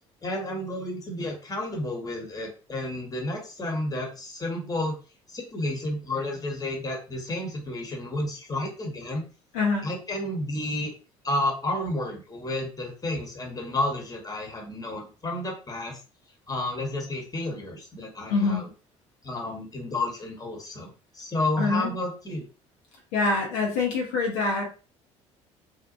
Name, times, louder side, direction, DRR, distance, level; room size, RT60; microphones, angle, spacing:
voice 1, 0.2-5.0 5.3-9.2 9.8-10.9 11.2-16.0 16.5-18.7 19.2-22.4, left 1 dB, 25° left, 0 dB, 1.0 m, -31 dB
voice 2, 9.5-9.9 18.3-18.6 21.6-21.9 23.1-24.6, left 3 dB, 75° left, -1 dB, 0.7 m, -25 dB
2.6 x 2.1 x 2.4 m, 0.34 s
hypercardioid pair, 60°, 16 cm